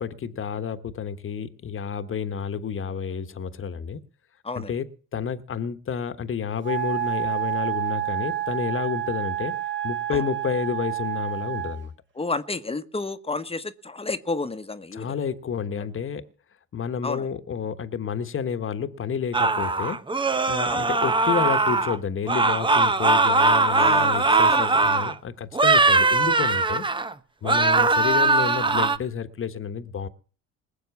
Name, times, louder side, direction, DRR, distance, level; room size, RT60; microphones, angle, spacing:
voice 1, 0.0-4.0 4.5-9.6 9.8-11.9 14.9-16.3 16.7-20.0 20.5-26.8 27.4-30.1, left 7 dB, 45° left, 1.4 m, -30 dB
Wind instrument woodwind instrument, 6.6-11.8, right 13 dB, 40° right, 2.4 m, -29 dB
voice 2, 12.2-15.1 15.8-15.9 17.0-17.3 20.7-20.9 23.7-24.7, left 3 dB, 20° left, 1.2 m, -31 dB
sound 1, 19.3-22.0 22.3-25.1 25.5-27.1 27.4-29.0, right 3 dB, 15° right, 0.8 m, -20 dB
20.0 x 7.2 x 7.1 m
supercardioid pair, 70°, 30 cm